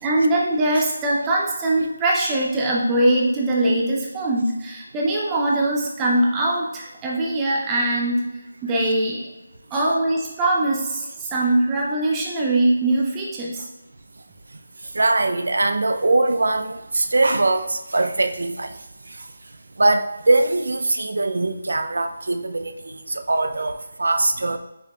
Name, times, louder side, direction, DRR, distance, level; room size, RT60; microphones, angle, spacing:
voice 1, 0.0-8.3 8.6-9.3 9.7-13.7, right 1 dB, 10° right, -3 dB, 0.5 m, -22 dB
voice 2, 14.9-18.7 19.8-24.6, right 2 dB, 75° right, 7 dB, 0.5 m, -21 dB
5.1 x 4.4 x 2.3 m, 0.98 s
figure-of-eight pair, 170°, 0 cm